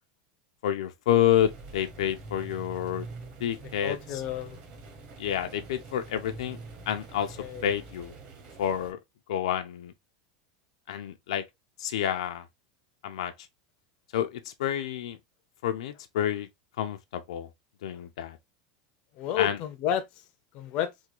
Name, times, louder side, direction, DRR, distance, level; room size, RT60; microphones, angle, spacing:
voice 1, 0.6-3.1 3.4-4.2 5.2-6.6 6.9-7.4 7.6-8.1 8.6-9.0 9.3-9.9 10.9-11.4 11.8-12.4 13.0-13.3 14.1-15.2 15.6-16.5 16.8-17.5 17.8-18.4 19.4-19.6, left 10 dB, 90° left, 0.6 m, -29 dB
sound 1, 1.4-8.9, right 3 dB, 35° right, 0.9 m, -45 dB
voice 2, 3.8-4.6 7.4-7.7 19.2-20.0 20.5-20.9, left 10 dB, 35° left, 0.5 m, -30 dB
3.5 x 2.3 x 3.0 m
supercardioid pair, 170°, 3 cm